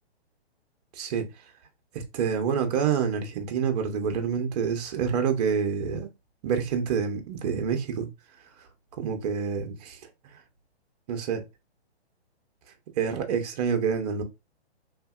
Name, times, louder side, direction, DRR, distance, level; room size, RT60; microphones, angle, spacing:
voice 1, 1.0-1.3 1.9-6.1 6.4-8.1 9.0-10.0 11.1-11.4 13.0-14.2, right 6 dB, 40° right, 0.7 m, -27 dB
2.8 x 2.7 x 2.3 m
hypercardioid pair, 140°, 32 cm